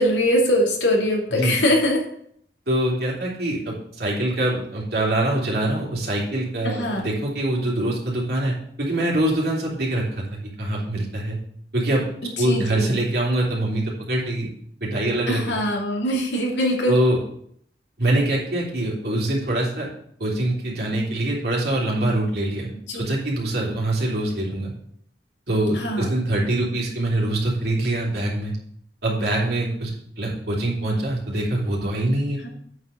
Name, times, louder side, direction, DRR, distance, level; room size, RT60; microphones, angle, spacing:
voice 1, 0.0-2.0 6.6-7.0 12.2-13.0 15.3-17.0 22.9-23.1 25.7-26.1, left 1 dB, 85° left, -1 dB, 2.6 m, -22 dB
voice 2, 2.7-11.4 11.7-12.0 12.4-14.5 14.8-15.5 16.9-17.2 18.0-19.9 20.2-24.7 25.5-28.5 29.0-32.4, right 1 dB, 60° right, -4 dB, 3.2 m, -24 dB
8.6 x 5.0 x 6.6 m, 0.67 s
head